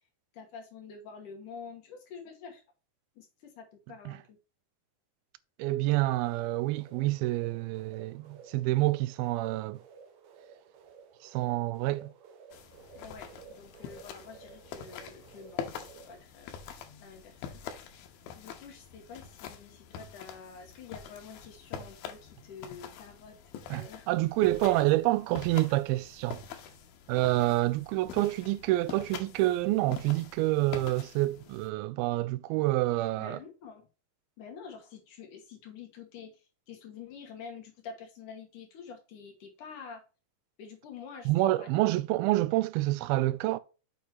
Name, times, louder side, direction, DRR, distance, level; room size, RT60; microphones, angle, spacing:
voice 1, 0.3-2.6 3.2-4.4 12.9-16.5 17.0-17.6 18.4-23.4 23.7-24.1 24.6-24.8 33.2-33.9 34.4-40.0 40.6-41.7, left 6 dB, 65° left, 2.7 m, -47 dB
voice 2, 5.6-9.8 11.2-12.1 23.7-26.4 27.1-33.4 41.3-43.6, right 17 dB, 90° right, 2.4 m, -28 dB
sound 1, 6.0-16.2, right 6 dB, 65° right, 1.9 m, -54 dB
sound 2, 12.5-31.7, left 8 dB, 85° left, 2.8 m, -45 dB
7.2 x 6.2 x 3.0 m
omnidirectional pair, 4.2 m